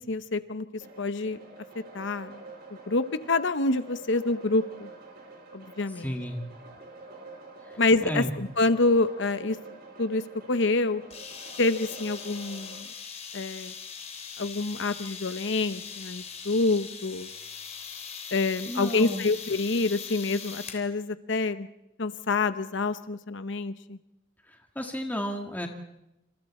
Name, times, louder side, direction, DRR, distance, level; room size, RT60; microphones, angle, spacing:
voice 1, 0.1-1.4 1.9-2.3 2.9-4.9 5.5-6.1 7.8-9.6 10.0-10.2 10.5-11.0 11.6-12.8 13.3-13.7 14.4-17.3 18.3-21.7 22.0-24.0, left 3 dB, 65° left, 11 dB, 0.9 m, -27 dB
sound 1, 0.8-12.8, right 2 dB, 55° right, 4.9 m, -48 dB
voice 2, 6.0-6.4 7.7-8.3 18.7-19.3 24.5-25.7, equal, 10° left, 2 dB, 1.8 m, -33 dB
sound 2, 11.1-20.9, left 6 dB, 35° left, 3.1 m, -41 dB
27.5 x 27.5 x 4.3 m, 0.86 s
head